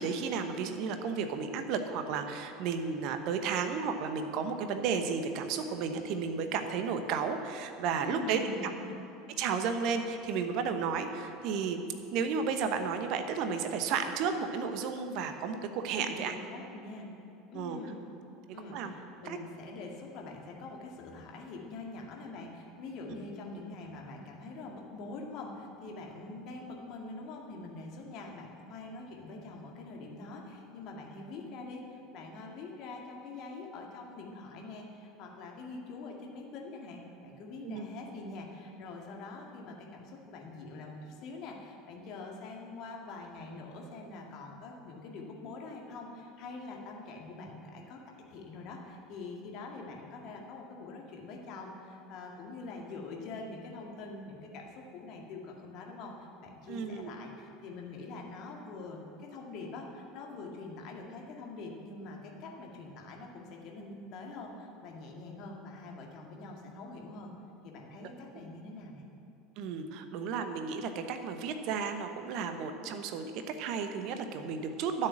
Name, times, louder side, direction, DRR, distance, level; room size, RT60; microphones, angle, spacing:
voice 1, 0.0-8.5 9.4-11.8 12.1-16.4 17.5-17.8 18.7-18.9 19.2-19.4 37.6-37.8 56.7-57.1 68.0-68.1 69.6-75.1, right 6 dB, 50° right, 7 dB, 1.0 m, -33 dB
voice 2, 8.0-9.0 15.9-17.1 17.5-18.1 18.5-48.0 48.3-67.3 67.6-69.0, left 3 dB, 50° left, 0 dB, 2.1 m, -44 dB
12.5 x 6.7 x 8.8 m, 2.7 s
figure-of-eight pair, 70°, 0 cm